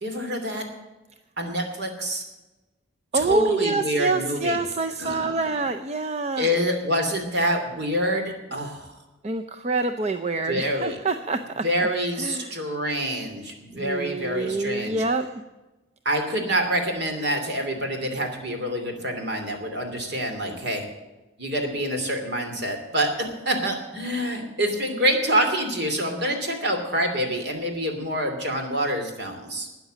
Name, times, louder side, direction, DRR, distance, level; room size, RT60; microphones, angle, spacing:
voice 1, 0.0-0.6 1.4-2.2 3.1-4.6 5.0-5.4 6.4-8.9 10.5-11.0 11.6-15.0 16.0-20.8 21.4-23.1 23.4-29.7, equal, 55° right, 4 dB, 2.7 m, -26 dB
voice 2, 3.1-6.5 9.2-11.6 12.2-12.6 13.7-15.3, right 3 dB, 35° right, 7 dB, 0.5 m, -26 dB
13.0 x 9.2 x 7.6 m, 1.1 s
head